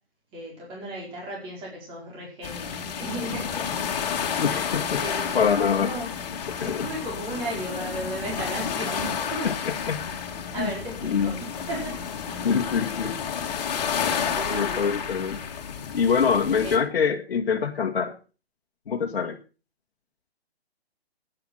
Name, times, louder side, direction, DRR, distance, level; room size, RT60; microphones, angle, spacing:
voice 1, 0.3-3.9 5.0-5.4 5.7-6.1 6.6-9.5 10.5-12.1 14.3-14.9 16.6-16.7, right 1 dB, 15° right, -2 dB, 4.7 m, -35 dB
sound 1, 2.4-16.8, left 7 dB, 40° left, 2.7 m, -31 dB
voice 2, 4.4-5.0 5.3-5.9 6.6-6.9 9.4-10.0 10.6-10.7 11.0-11.3 12.4-13.2 14.5-15.4 15.9-18.1 18.9-19.4, left 6 dB, 60° left, 0 dB, 1.8 m, -24 dB
12.5 x 9.5 x 6.3 m, 0.35 s
hypercardioid pair, 165°, 31 cm